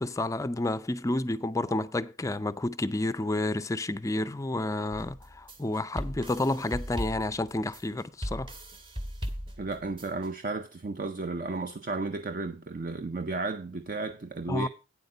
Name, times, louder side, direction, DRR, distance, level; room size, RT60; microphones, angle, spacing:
voice 1, 0.0-8.5 14.5-14.7, left 2 dB, 15° left, 0.4 m, -30 dB
sound 1, 4.9-10.3, equal, 25° right, 1.3 m, -38 dB
voice 2, 9.6-14.7, right 3 dB, 45° right, 0.5 m, -33 dB
8.8 x 8.1 x 5.1 m
head